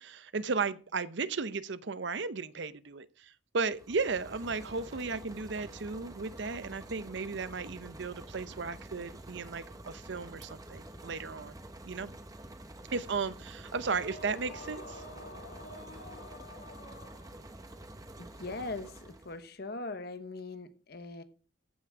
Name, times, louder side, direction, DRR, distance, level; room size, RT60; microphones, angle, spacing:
voice 1, 0.0-11.5 11.8-12.1 12.9-15.0, right 4 dB, 65° right, 0.7 m, -35 dB
sound 1, 3.6-19.4, right 1 dB, 20° right, 1.0 m, -48 dB
sound 2, 13.6-17.6, left 1 dB, 75° left, 3.4 m, -48 dB
voice 2, 18.2-21.2, left 3 dB, 55° left, 1.1 m, -41 dB
14.5 x 6.0 x 4.8 m
head